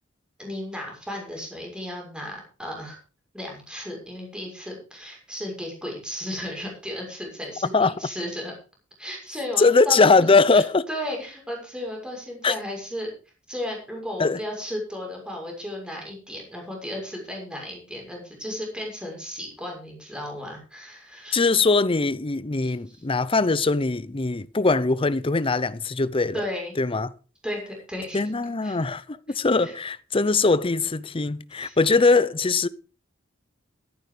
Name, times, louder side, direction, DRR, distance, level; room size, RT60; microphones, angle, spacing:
voice 1, 0.4-3.0 3.3-8.5 9.0-10.3 10.5-13.1 13.5-21.4 22.6-23.0 26.3-26.7 27.4-28.2 28.6-28.8 29.6-29.7 31.6-31.8, left 1 dB, 5° right, 6.4 m, -34 dB
voice 2, 9.6-10.9 12.4-12.5 14.2-14.4 21.3-26.4 26.8-27.1 28.1-32.7, left 3 dB, 30° left, 0.6 m, -21 dB
13.5 x 11.0 x 5.1 m
head